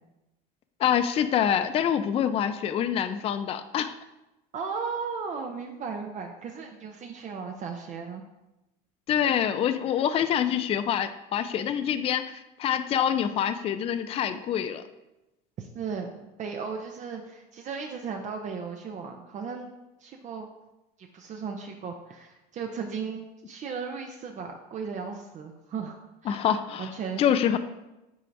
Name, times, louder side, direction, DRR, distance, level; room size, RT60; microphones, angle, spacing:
voice 1, 0.8-3.9 9.1-12.2 12.6-14.8 26.3-26.9 27.2-27.6, left 9 dB, 30° left, 11 dB, 0.4 m, -26 dB
voice 2, 4.5-8.2 15.6-19.7 20.0-20.5 21.1-26.5 26.8-27.2, right 5 dB, 40° right, 3 dB, 0.6 m, -36 dB
8.3 x 4.4 x 2.6 m, 0.97 s
supercardioid pair, 110°, 20 cm